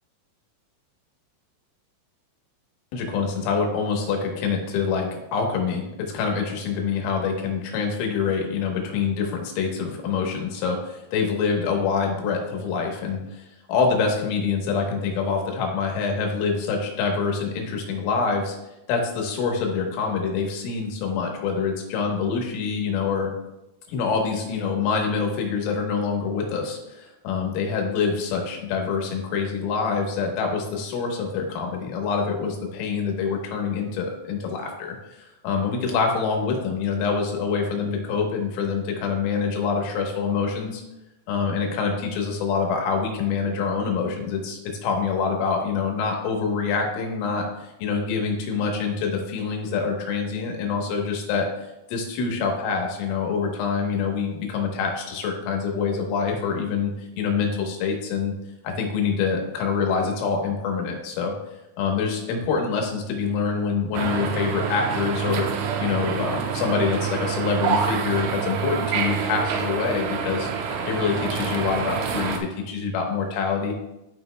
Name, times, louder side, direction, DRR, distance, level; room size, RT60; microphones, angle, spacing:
voice 1, 2.9-18.6 18.9-23.3 23.9-40.8 41.3-51.5 51.9-58.3 58.6-61.3 61.8-65.5 65.8-70.5 70.9-73.7, left 5 dB, 80° left, 1 dB, 3.6 m, -26 dB
sound 1, 63.9-72.4, right 6 dB, 85° right, 3.0 m, -27 dB
13.5 x 5.2 x 2.2 m, 0.94 s
omnidirectional pair, 5.8 m